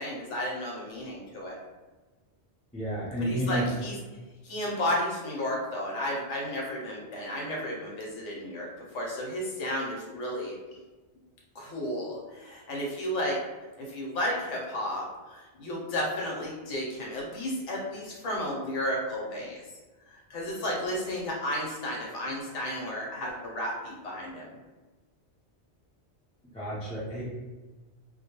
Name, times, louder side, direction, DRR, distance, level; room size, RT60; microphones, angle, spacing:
voice 1, 0.0-1.6 3.2-4.0 4.4-10.5 11.5-13.4 13.8-19.6 20.1-24.6, left 1 dB, 85° left, -2 dB, 1.1 m, -33 dB
voice 2, 2.7-3.7 26.5-27.2, equal, 10° left, -11 dB, 0.5 m, -31 dB
2.2 x 2.2 x 2.9 m, 1.2 s
omnidirectional pair, 1.2 m